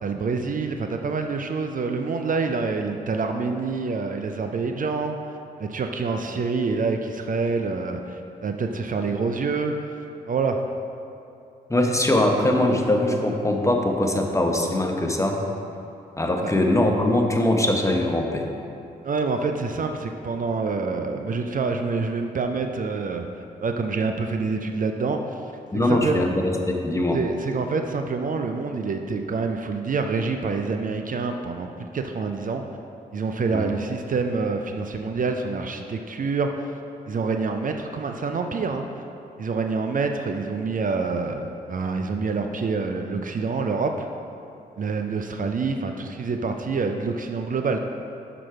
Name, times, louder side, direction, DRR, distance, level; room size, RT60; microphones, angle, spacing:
voice 1, 0.0-5.2 5.6-9.9 10.3-10.6 16.4-16.5 19.0-23.3 23.6-25.2 25.8-26.2 27.1-32.6 33.1-36.5 37.1-38.9 39.4-44.1 44.8-47.8, right 4 dB, 50° right, 5 dB, 0.6 m, -26 dB
voice 2, 11.7-15.4 16.2-18.5 25.7-27.2 33.5-33.7, left 1 dB, 15° left, 2 dB, 1.1 m, -22 dB
6.2 x 5.9 x 4.7 m, 2.7 s
hypercardioid pair, 40°, 18 cm